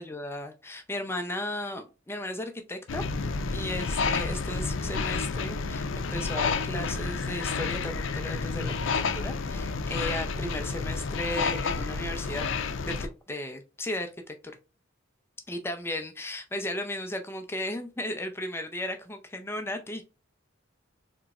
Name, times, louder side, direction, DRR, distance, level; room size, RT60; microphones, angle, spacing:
voice 1, 0.0-3.0 3.5-12.5 12.8-14.3 15.5-20.0, left 1 dB, 10° left, 0.4 m, -35 dB
sound 1, 2.9-13.1, left 4 dB, 70° left, 0.4 m, -30 dB
3.9 x 3.0 x 2.3 m
head